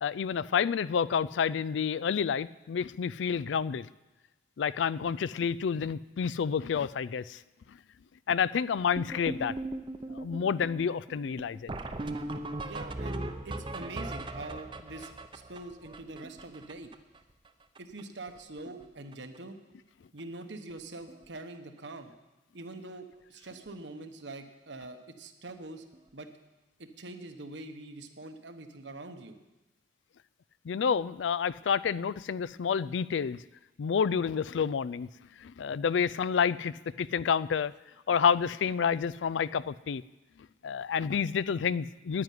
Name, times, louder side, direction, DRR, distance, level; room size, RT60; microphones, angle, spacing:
voice 1, 0.0-3.9 4.6-7.4 8.3-9.5 10.1-11.7 30.7-33.4 33.8-35.1 35.4-37.7 38.1-40.0 40.6-42.2, left 6 dB, 80° left, 19 dB, 0.4 m, -29 dB
sound 1, 9.0-17.2 17.5-17.6 17.8-18.0 18.3-18.8 19.1-19.4 20.2-20.3 20.7-20.8 21.1-21.2 23.5-23.6 25.9-26.0, right 2 dB, 25° right, 0.7 m, -39 dB
voice 2, 12.6-16.9 17.8-19.6 20.1-22.1 22.5-25.8 26.1-26.3 26.8-29.3, right 2 dB, 75° right, 7 dB, 1.2 m, -44 dB
9.8 x 9.7 x 9.3 m, 1.1 s
head